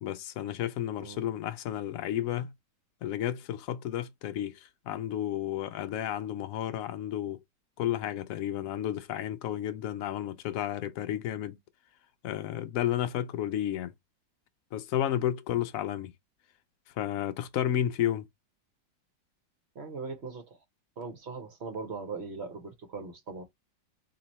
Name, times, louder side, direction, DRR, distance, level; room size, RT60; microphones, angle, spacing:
voice 1, 0.0-2.5 3.0-7.4 7.8-11.6 12.2-13.9 14.7-16.1 17.0-18.3, left 11 dB, 70° left, 0.8 m, -32 dB
voice 2, 19.7-20.6 21.0-23.4, right 4 dB, 45° right, 0.9 m, -40 dB
3.0 x 3.0 x 4.0 m
omnidirectional pair, 2.0 m